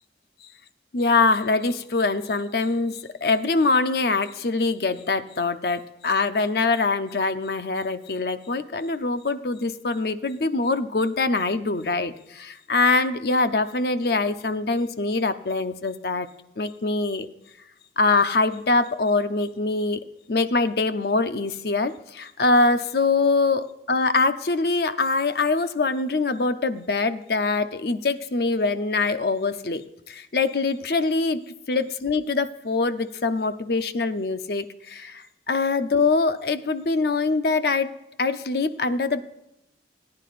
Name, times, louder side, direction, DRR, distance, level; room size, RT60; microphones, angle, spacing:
voice 1, 0.9-16.3 16.6-17.3 18.0-20.0 20.3-37.9 38.2-39.2, left 3 dB, 60° left, 10 dB, 0.6 m, -24 dB
19.0 x 9.7 x 2.5 m, 0.87 s
head